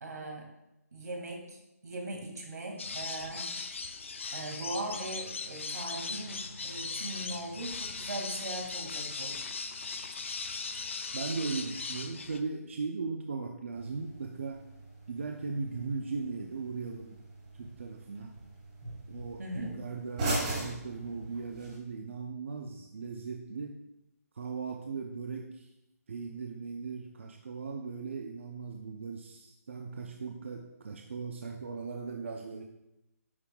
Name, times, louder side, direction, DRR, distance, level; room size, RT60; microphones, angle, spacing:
voice 1, 0.0-0.5 0.9-3.5 4.3-9.4 19.4-19.8, right 2 dB, 80° right, 2 dB, 2.0 m, -39 dB
sound 1, 2.8-12.4, left 4 dB, 50° left, 0.5 m, -38 dB
voice 2, 11.1-14.7 15.1-17.2 17.5-18.3 19.1-23.8 24.3-25.7 26.1-32.6, right 4 dB, 45° right, 3 dB, 0.5 m, -38 dB
sound 2, 13.7-21.7, right 2 dB, 25° right, 2.3 m, -40 dB
9.4 x 5.4 x 2.2 m, 0.91 s
hypercardioid pair, 180°, 9 cm